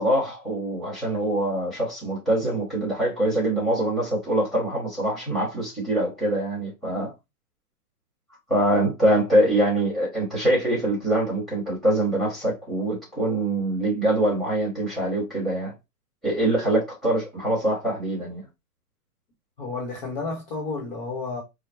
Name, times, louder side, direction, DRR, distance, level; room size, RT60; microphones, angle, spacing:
voice 1, 0.0-7.1 8.5-15.7 16.2-18.4, right 1 dB, ahead, 1.3 m, -24 dB
voice 2, 19.6-21.4, left 3 dB, 25° left, 0.9 m, -31 dB
4.8 x 2.1 x 3.4 m
hypercardioid pair, 160°, 47 cm